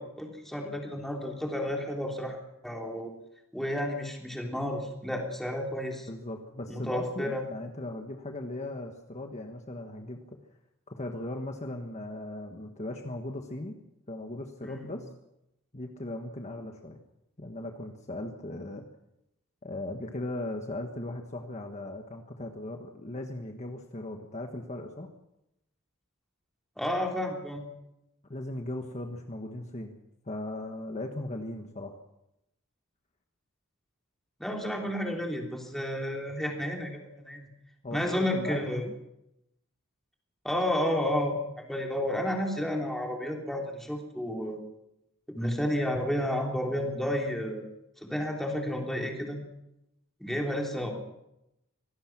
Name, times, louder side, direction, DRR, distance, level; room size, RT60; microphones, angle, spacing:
voice 1, 0.0-2.4 2.6-3.1 3.5-6.1 6.7-7.4 14.6-14.9 26.8-27.7 34.4-37.5 37.9-38.8 40.4-44.6 45.3-47.6 48.0-49.4 50.2-50.9, left 1 dB, ahead, 0 dB, 3.5 m, -31 dB
voice 2, 6.1-10.2 10.9-13.8 14.1-15.1 15.7-17.0 17.4-18.9 19.6-25.1 28.3-30.0 30.2-31.9 37.8-38.9, left 1 dB, 30° left, 3 dB, 1.5 m, -38 dB
25.0 x 18.5 x 6.1 m, 0.87 s
head